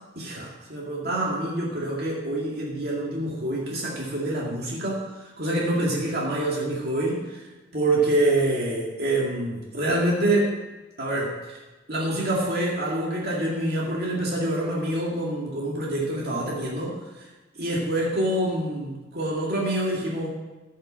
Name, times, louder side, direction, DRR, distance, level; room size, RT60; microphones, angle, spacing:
voice 1, 0.2-7.5 7.7-10.6 11.0-11.6 11.9-16.9 17.6-20.3, right 1 dB, 55° right, -4 dB, 2.1 m, -26 dB
14.5 x 5.7 x 7.3 m, 1.2 s
head